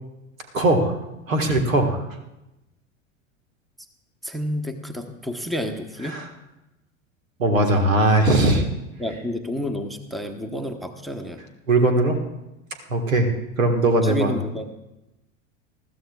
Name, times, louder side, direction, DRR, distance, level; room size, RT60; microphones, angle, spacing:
voice 1, 0.5-1.0 1.3-2.0 6.0-6.3 7.4-8.6 11.7-12.2 12.9-13.3 13.6-14.3, right 2 dB, 80° right, 5 dB, 1.7 m, -19 dB
voice 2, 4.2-6.2 9.0-11.4 14.0-14.7, left 1 dB, ahead, 7 dB, 1.0 m, -30 dB
20.5 x 14.0 x 2.4 m, 0.95 s
figure-of-eight pair, 80°, 39 cm